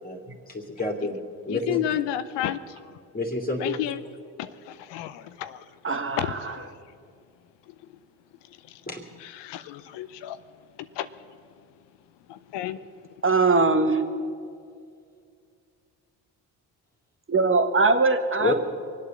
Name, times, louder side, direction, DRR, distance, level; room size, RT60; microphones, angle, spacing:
voice 1, 0.0-1.2 1.4-1.8 3.1-3.8 8.9-9.0 18.4-18.5, left 3 dB, 20° left, 1 dB, 2.6 m, -29 dB
voice 2, 1.5-3.0 3.6-4.0 4.4-5.7 6.2-6.8 7.7-7.8 8.5-8.8 9.2-10.4 10.8-11.1 12.3-12.8, left 12 dB, 80° left, 12 dB, 0.7 m, -32 dB
voice 3, 5.8-6.2 13.2-14.0 17.3-18.5, right 3 dB, 30° right, 7 dB, 1.6 m, -21 dB
23.5 x 8.4 x 7.3 m, 2.3 s
supercardioid pair, 55°, 43 cm